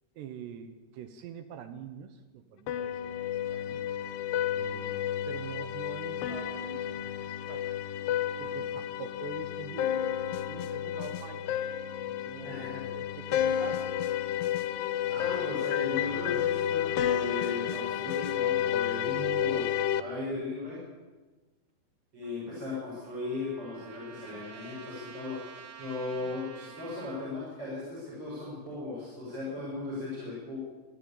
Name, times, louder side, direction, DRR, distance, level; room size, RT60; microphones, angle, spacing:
voice 1, 0.2-3.2 3.5-3.8 4.6-7.7 8.4-11.7 12.1-12.6 12.9-13.9, right 8 dB, 75° right, 10 dB, 3.1 m, -45 dB
sound 1, 2.7-20.0, left 10 dB, 75° left, 2.9 m, -31 dB
voice 2, 12.4-12.9 15.1-19.7 20.0-20.8 22.1-30.6, left 3 dB, 25° right, -7 dB, 7.6 m, -37 dB
Trumpet, 22.2-27.3, right 7 dB, 45° right, 2.7 m, -50 dB
24.5 x 13.0 x 8.7 m, 1.3 s
omnidirectional pair, 5.1 m